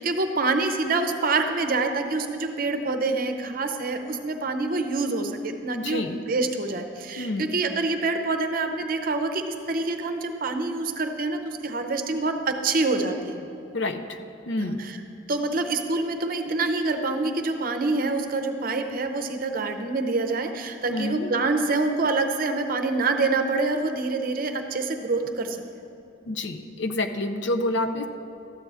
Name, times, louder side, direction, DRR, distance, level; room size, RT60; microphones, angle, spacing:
voice 1, 0.0-13.5 14.6-15.0 15.3-25.6, right 3 dB, 50° right, 6 dB, 0.6 m, -26 dB
voice 2, 5.7-6.2 7.2-7.5 13.7-14.2 14.5-14.8 20.9-21.3 26.3-28.1, left 2 dB, 65° left, 8 dB, 0.5 m, -28 dB
13.0 x 8.4 x 3.4 m, 2.7 s
head